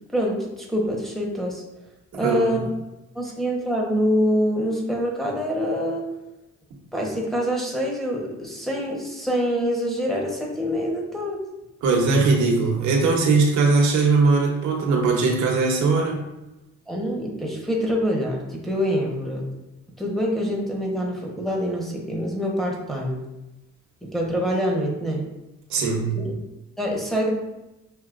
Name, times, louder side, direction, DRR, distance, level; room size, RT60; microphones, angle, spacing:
voice 1, 0.1-1.6 2.2-2.7 3.1-6.0 6.9-11.4 16.9-19.4 20.0-23.2 24.0-25.2 26.1-26.3 26.8-27.3, equal, ahead, -3 dB, 1.1 m, -25 dB
voice 2, 11.8-16.3 25.7-26.1, right 3 dB, 70° right, -1 dB, 1.0 m, -20 dB
6.2 x 2.8 x 2.5 m, 0.97 s
cardioid pair, 90°, 30 cm